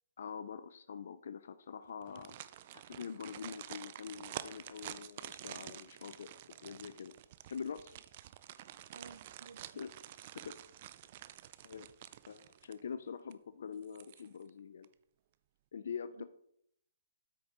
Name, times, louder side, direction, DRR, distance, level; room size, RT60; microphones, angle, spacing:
voice 1, 0.2-6.3 6.6-7.1 7.5-7.9 9.8-9.9 10.3-10.6 11.6-11.9 12.3-14.9 15.7-16.2, left 6 dB, 70° left, 13 dB, 0.4 m, -45 dB
sound 1, 2.0-13.0 13.3-13.4 13.8-14.5 14.8-14.9, right 12 dB, 45° right, 0.4 m, -49 dB
voice 2, 8.9-9.8 16.1-16.2, right 5 dB, 80° right, 10 dB, 1.0 m, -54 dB
8.3 x 6.1 x 3.8 m, 0.71 s
hypercardioid pair, 145°, 0 cm